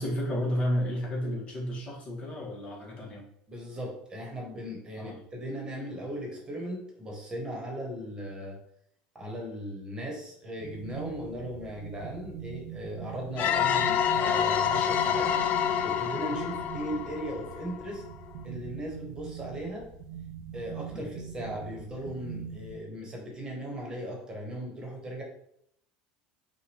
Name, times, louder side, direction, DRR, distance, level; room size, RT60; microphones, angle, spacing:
voice 1, 0.0-3.2 5.0-5.2 20.9-21.1, equal, 35° left, -2 dB, 1.5 m, -32 dB
voice 2, 3.5-8.6 9.1-15.3 15.8-18.0 18.4-19.9 20.5-25.2, equal, 25° right, 0 dB, 1.4 m, -38 dB
sound 1, 10.6-22.8, right 7 dB, 70° right, 0.7 m, -42 dB
sound 2, 13.4-17.9, left 9 dB, 50° left, 0.4 m, -27 dB
5.8 x 2.5 x 3.5 m, 0.71 s
supercardioid pair, 110°, 4 cm